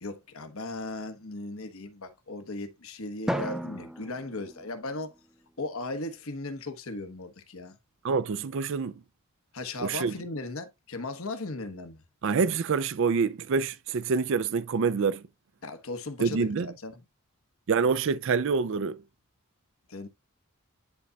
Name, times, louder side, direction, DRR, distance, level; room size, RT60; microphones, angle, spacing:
voice 1, 0.0-5.1 5.6-7.8 9.5-12.0 15.6-16.9 19.9-20.1, left 2 dB, 70° left, 1.2 m, -37 dB
Drum, 3.3-5.6, equal, 5° right, 0.5 m, -36 dB
voice 2, 8.0-8.9 9.8-10.1 12.2-15.2 16.2-16.7 17.7-19.0, right 5 dB, 60° right, 0.4 m, -26 dB
10.5 x 4.1 x 2.3 m
head